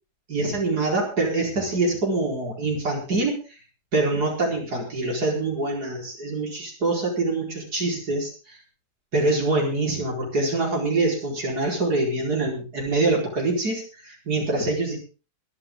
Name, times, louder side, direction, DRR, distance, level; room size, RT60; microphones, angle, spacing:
voice 1, 0.3-3.6 3.9-8.6 9.1-15.0, right 2 dB, 75° right, -1 dB, 5.2 m, -25 dB
22.5 x 11.0 x 3.8 m, 0.35 s
omnidirectional pair, 1.7 m